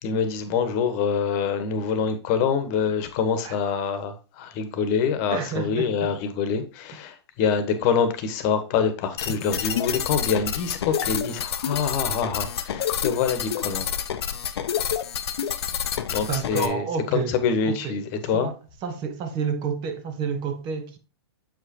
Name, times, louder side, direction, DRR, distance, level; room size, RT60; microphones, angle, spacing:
voice 1, 0.0-13.9 16.1-16.8 17.1-18.5, left 6 dB, 40° left, 1.3 m, -25 dB
voice 2, 5.3-6.1 16.3-17.3 17.7-18.0 18.3-21.0, right 6 dB, 35° right, 1.2 m, -30 dB
sound 1, 9.2-16.7, left 8 dB, 70° left, 0.7 m, -28 dB
7.7 x 5.0 x 2.9 m
hypercardioid pair, 125°, 14 cm